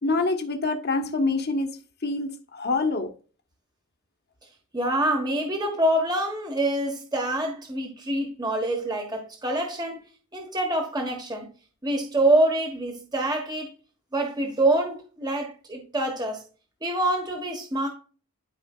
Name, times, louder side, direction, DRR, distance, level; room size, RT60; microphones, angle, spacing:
voice 1, 0.0-1.7 2.0-3.1, left 3 dB, 50° left, 1.4 m, -26 dB
voice 2, 4.7-10.1 10.3-11.5 11.8-13.7 14.1-16.4 16.8-17.9, right 1 dB, 20° right, 1.4 m, -26 dB
13.0 x 5.0 x 2.4 m
head